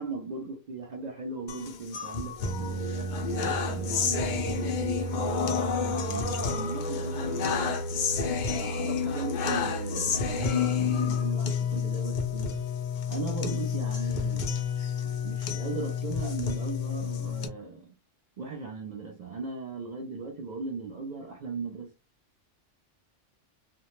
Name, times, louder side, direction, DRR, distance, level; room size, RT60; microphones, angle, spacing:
voice 1, 0.0-7.8 8.4-12.5 13.1-14.6 15.2-17.9 18.4-21.9, right 4 dB, 80° right, 0.4 m, -38 dB
sound 1, 1.5-17.5, left 5 dB, 70° left, 0.4 m, -29 dB
2.2 x 2.1 x 2.9 m
omnidirectional pair, 1.3 m